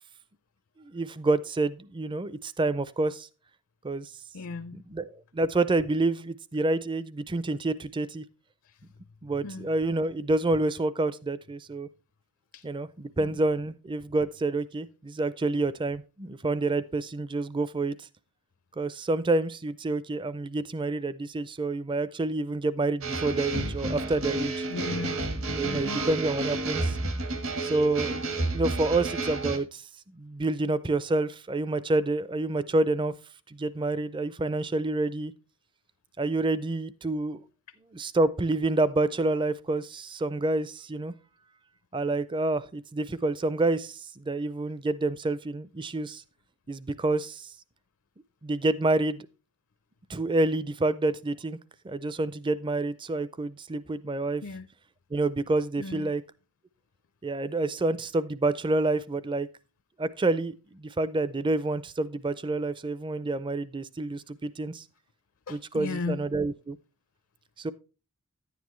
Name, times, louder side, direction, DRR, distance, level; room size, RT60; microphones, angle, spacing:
voice 1, 0.8-3.3 3.8-4.1 4.7-8.2 9.2-11.9 12.6-18.1 18.8-24.7 25.6-27.0 27.6-33.1 33.5-35.3 36.2-37.4 37.9-41.1 41.9-46.2 46.7-47.5 48.4-49.3 50.1-51.6 51.8-54.4 55.1-56.2 57.2-59.5 60.0-64.8 65.5-66.8 67.6-67.7, right 2 dB, 20° right, 0.4 m, -28 dB
voice 2, 4.3-4.8 9.4-9.7 12.5-12.6 13.2-13.4 24.7-25.2 25.6-26.0 54.4-54.7 55.8-56.1 65.5-66.2, left 3 dB, 65° left, 0.5 m, -36 dB
sound 1, 23.0-29.6, right 2 dB, 65° right, 1.5 m, -30 dB
10.5 x 9.4 x 3.1 m
head